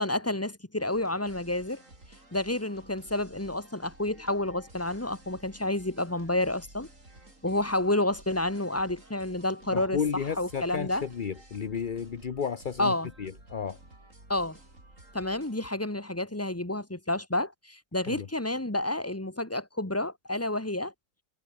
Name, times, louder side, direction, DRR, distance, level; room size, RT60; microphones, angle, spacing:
voice 1, 0.0-1.8 2.3-6.9 7.4-10.0 10.4-11.1 12.8-13.1 14.3-14.6 15.1-20.9, left 1 dB, 10° left, 1.9 m, -29 dB
sound 1, 0.9-15.7, right 2 dB, 40° right, 6.9 m, -53 dB
voice 2, 9.7-13.8 18.1-18.3, left 6 dB, 45° left, 0.6 m, -33 dB
omnidirectional pair, 2.0 m